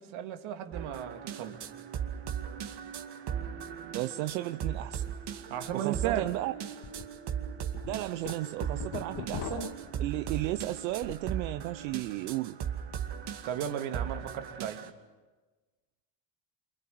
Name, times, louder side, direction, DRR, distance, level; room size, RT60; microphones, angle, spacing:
voice 1, 0.0-1.6 5.5-6.3 13.4-14.8, right 10 dB, 70° right, 6 dB, 2.5 m, -35 dB
sound 1, 0.7-14.9, right 8 dB, 50° right, 2.4 m, -38 dB
voice 2, 3.9-5.0 5.7-6.5 7.9-12.6, right 17 dB, 90° right, 11 dB, 0.8 m, -34 dB
sound 2, 5.7-5.8 6.1-6.2 6.8-7.0 7.5-11.3 11.6-12.1, left 6 dB, 55° left, 2.5 m, -41 dB
26.0 x 24.5 x 7.8 m, 1.2 s
supercardioid pair, 85°, 49 cm